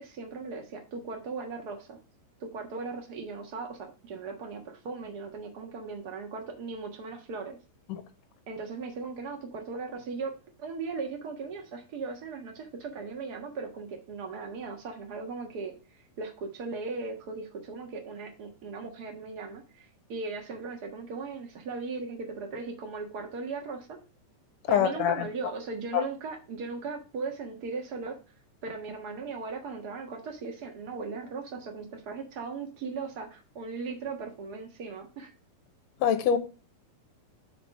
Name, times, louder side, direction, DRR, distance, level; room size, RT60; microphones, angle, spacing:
voice 1, 0.0-2.0 2.4-7.6 8.5-10.3 10.6-15.7 16.2-24.0 24.7-28.2 28.6-35.3, right 4 dB, 45° right, 1.3 m, -38 dB
voice 2, 24.7-25.3 25.9-26.0 36.0-36.4, left 8 dB, 70° left, 1.7 m, -24 dB
5.7 x 4.3 x 6.2 m
omnidirectional pair, 3.9 m